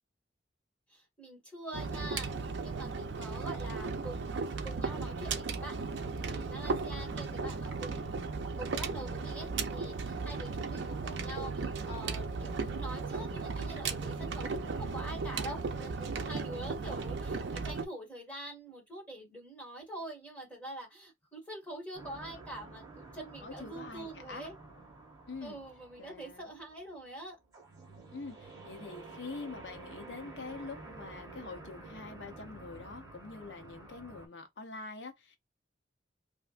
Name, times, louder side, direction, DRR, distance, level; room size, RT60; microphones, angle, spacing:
voice 1, 0.9-8.3 8.6-24.6 25.4-27.4, right 1 dB, 10° left, 1.7 m, -45 dB
sound 1, 1.7-17.9, right 4 dB, 80° right, 0.5 m, -36 dB
sound 2, 21.9-34.3, right 3 dB, 20° right, 1.2 m, -50 dB
voice 2, 23.4-24.5 25.3-25.6 26.0-26.5 28.1-35.4, left 4 dB, 75° left, 0.6 m, -45 dB
3.3 x 2.5 x 2.4 m
head